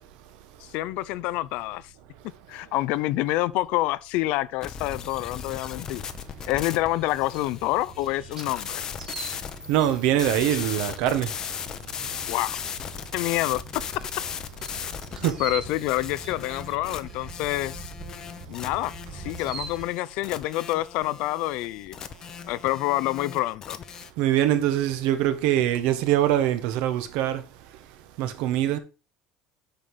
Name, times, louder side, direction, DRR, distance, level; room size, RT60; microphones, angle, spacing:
voice 1, 0.6-1.9 2.5-6.1 6.5-8.8 12.3-12.5 13.1-13.6 15.1-17.9 18.5-22.0 22.5-23.8, left 17 dB, 60° left, 0.5 m, -27 dB
sound 1, 4.6-24.1, left 8 dB, 30° left, 0.8 m, -37 dB
sound 2, 4.7-19.9, right 4 dB, 20° right, 2.2 m, -43 dB
voice 2, 9.7-11.4 15.1-15.4 24.2-27.5 28.2-28.8, right 12 dB, 65° right, 1.4 m, -23 dB
9.0 x 5.7 x 4.9 m
cardioid pair, 170°, 2 cm